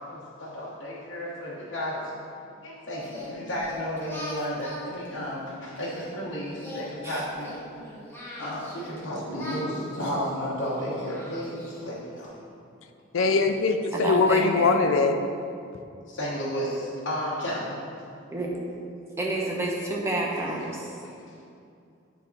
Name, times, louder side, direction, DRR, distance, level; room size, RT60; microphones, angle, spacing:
voice 1, 0.1-2.4 2.6-7.5 8.4-12.3 13.2-13.3 16.1-17.8 20.5-20.7 21.0-21.3, equal, 65° left, -8 dB, 1.2 m, -33 dB
Singing, 3.0-6.1 6.5-9.0 9.3-11.9, left 1 dB, 10° left, 1.1 m, -41 dB
voice 2, 13.1-15.2, left 4 dB, 85° left, 6 dB, 0.5 m, -22 dB
voice 3, 13.9-14.7 18.3-18.5 19.2-21.0, right 1 dB, 15° right, -3 dB, 1.0 m, -29 dB
10.0 x 4.2 x 4.1 m, 2.5 s
head